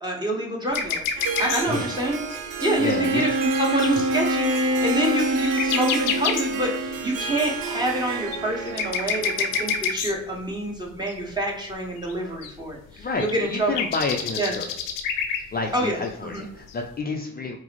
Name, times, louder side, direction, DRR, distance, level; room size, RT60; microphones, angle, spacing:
voice 1, 0.0-1.1 1.4-2.2 2.6-13.7 14.4-14.5 15.7-16.4, right 1 dB, 15° right, -2 dB, 1.4 m, -27 dB
sound 1, 0.7-1.8 2.3-4.0 4.5-4.6 4.9-5.0 5.2-6.9 7.6-10.4 11.1-11.2 11.7-11.8 12.0-12.5 13.0-13.3 13.6-15.4 15.7-15.8 16.0-16.1 16.3-16.4 16.7-16.8, left 7 dB, 90° left, 0.5 m, -28 dB
Harp, 1.2-9.9, right 7 dB, 85° right, 0.5 m, -33 dB
Wind instrument woodwind instrument, 2.6-7.1, right 1 dB, 40° right, 0.8 m, -25 dB
voice 2, 2.8-3.2 13.0-14.7 15.5-17.6, left 3 dB, 30° left, 2 dB, 0.5 m, -29 dB
4.5 x 2.0 x 2.9 m, 0.79 s
supercardioid pair, 45°, 31 cm